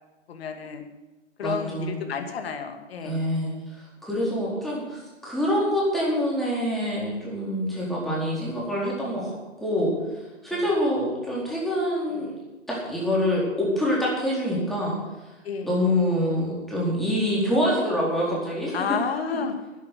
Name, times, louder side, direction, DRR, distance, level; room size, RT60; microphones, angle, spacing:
voice 1, 0.3-0.8 1.4-3.2 10.5-10.6 15.4-15.7 18.7-19.5, left 6 dB, 50° left, 5 dB, 2.4 m, -31 dB
voice 2, 1.4-2.0 3.0-3.5 4.0-9.9 10.4-12.3 12.7-14.9 15.6-18.8, equal, ahead, -6 dB, 4.4 m, -25 dB
11.0 x 10.5 x 8.5 m, 1.1 s
hypercardioid pair, 145°, 38 cm